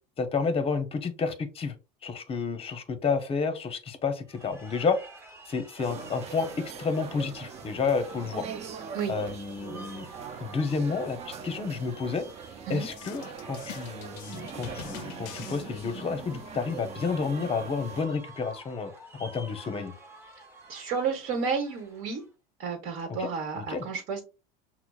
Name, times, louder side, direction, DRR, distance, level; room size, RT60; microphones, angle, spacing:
voice 1, 0.2-1.8 2.0-5.0 5.5-8.4 9.1-10.1 10.4-12.2 12.7-18.9 19.2-19.9 23.1-23.3 23.5-23.9, left 5 dB, 25° left, 9 dB, 0.7 m, -30 dB
sound 1, 4.3-22.3, right 2 dB, 10° right, 0.9 m, -50 dB
sound 2, 5.8-18.0, right 7 dB, 30° right, 0.4 m, -42 dB
sound 3, 12.9-16.3, left 11 dB, 70° left, 0.4 m, -45 dB
voice 2, 20.7-22.2 22.6-24.2, right 5 dB, 60° right, 2 dB, 1.1 m, -31 dB
5.8 x 2.0 x 2.3 m, 0.30 s
supercardioid pair, 100°, 21 cm